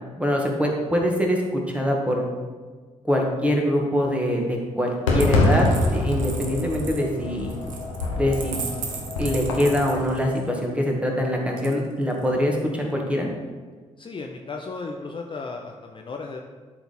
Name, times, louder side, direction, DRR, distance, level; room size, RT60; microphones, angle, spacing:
voice 1, 0.2-2.2 3.0-7.5 8.1-8.6 9.2-13.3, equal, 5° right, 0 dB, 1.8 m, -24 dB
Fireworks, 5.1-10.1, left 2 dB, 80° left, 0.9 m, -25 dB
Coin (dropping), 5.1-10.5 11.6-12.3, right 6 dB, 75° right, 0.7 m, -38 dB
voice 2, 14.0-16.4, left 3 dB, 30° left, 2 dB, 0.7 m, -35 dB
11.5 x 4.0 x 4.3 m, 1.4 s
figure-of-eight pair, 40°, 17 cm